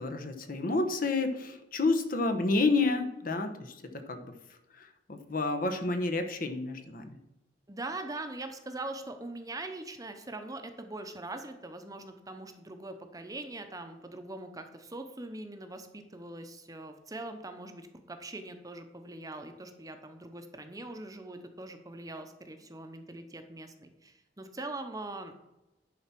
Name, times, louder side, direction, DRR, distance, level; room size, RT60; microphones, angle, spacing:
voice 1, 0.0-4.3 4.8-7.2, left 3 dB, 55° left, 7 dB, 1.0 m, -30 dB
voice 2, 7.7-25.3, right 2 dB, 20° right, 7 dB, 0.8 m, -42 dB
10.5 x 4.2 x 5.9 m, 0.96 s
head